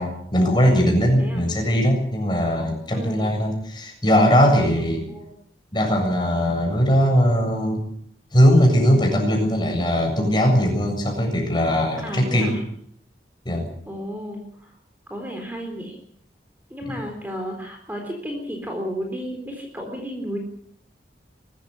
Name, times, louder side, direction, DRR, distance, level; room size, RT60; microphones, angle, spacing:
voice 1, 0.0-5.0 5.7-7.8 8.3-12.5 13.5-13.7, equal, 25° left, 2 dB, 7.5 m, -20 dB
voice 2, 2.9-3.3 4.8-5.3 12.0-12.6 13.9-14.8 15.1-16.0 16.7-20.4, equal, 10° right, 2 dB, 3.9 m, -33 dB
23.5 x 14.0 x 10.0 m, 0.66 s
head